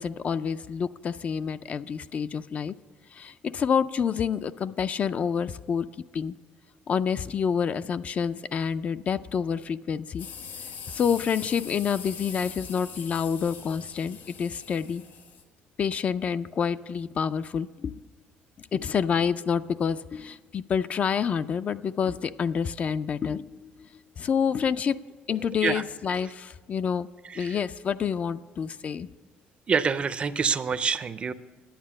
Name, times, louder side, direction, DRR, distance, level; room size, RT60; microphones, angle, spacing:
voice 1, 0.0-2.7 3.1-5.9 6.1-6.3 6.9-10.3 10.9-15.0 15.8-18.0 18.6-23.9 24.2-25.0 25.3-27.1 27.4-29.1, left 7 dB, 40° left, 13 dB, 0.3 m, -28 dB
sound 1, 10.2-15.4, left 6 dB, 70° left, 1.6 m, -42 dB
voice 2, 29.7-31.3, right 5 dB, 30° right, 14 dB, 0.5 m, -26 dB
10.0 x 8.7 x 7.5 m, 1.4 s
cardioid pair, 130°, 4 cm